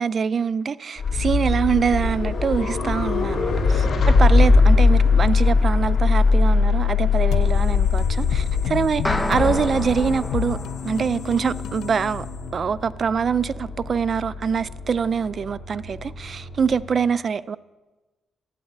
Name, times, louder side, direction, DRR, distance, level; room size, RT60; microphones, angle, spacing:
voice 1, 0.0-10.6 10.8-12.3 12.5-17.6, right 6 dB, 40° right, 0.4 m, -24 dB
sound 1, 1.0-16.9, left 4 dB, 55° left, 2.9 m, -21 dB
sound 2, 7.3-12.9, left 9 dB, 85° left, 0.4 m, -28 dB
sound 3, 9.0-11.5, left 1 dB, 10° left, 0.9 m, -29 dB
12.5 x 8.2 x 8.6 m
cardioid pair, 125°, 0 cm